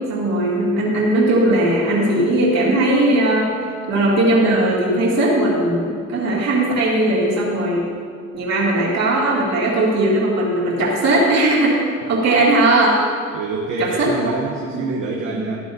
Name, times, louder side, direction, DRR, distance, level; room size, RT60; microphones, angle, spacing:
voice 1, 0.1-3.6 3.9-7.8 8.3-11.8 12.1-13.0 13.8-14.3 14.7-14.8 15.3-15.5, right 1 dB, 60° right, -5 dB, 2.4 m, -18 dB
voice 2, 13.3-15.6, right 3 dB, 85° right, -1 dB, 1.0 m, -26 dB
13.5 x 10.5 x 2.7 m, 2.1 s
cardioid pair, 90°, 30 cm